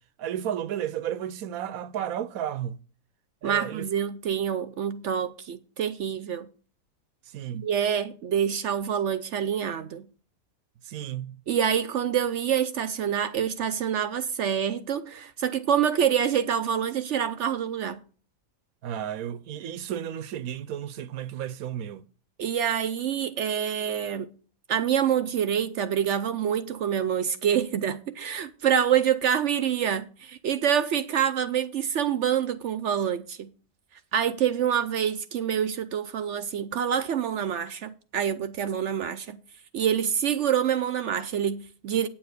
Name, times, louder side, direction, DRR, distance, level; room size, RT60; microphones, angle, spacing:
voice 1, 0.2-2.8 3.4-3.9 7.3-7.7 10.8-11.4 18.8-22.0, right 10 dB, 85° right, 1.1 m, -33 dB
voice 2, 3.4-6.5 7.5-10.0 11.5-18.0 22.4-24.3 24.7-33.5 34.1-39.4 39.7-42.1, right 8 dB, 65° right, 0.9 m, -26 dB
9.1 x 7.1 x 6.5 m
omnidirectional pair, 1.5 m